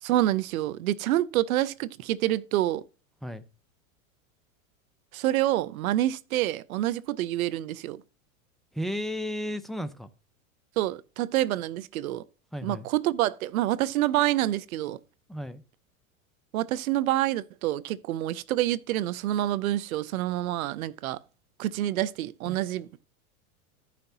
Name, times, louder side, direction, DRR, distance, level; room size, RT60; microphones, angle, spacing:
voice 1, 0.0-2.8 5.1-8.0 10.8-12.2 12.6-15.0 16.5-21.2 21.6-23.0, right 14 dB, 75° right, 0.7 m, -27 dB
voice 2, 8.7-10.1 12.5-12.9 15.3-15.6 22.5-22.6, equal, ahead, 0.7 m, -33 dB
14.5 x 5.9 x 2.8 m
hypercardioid pair, 110°, 43 cm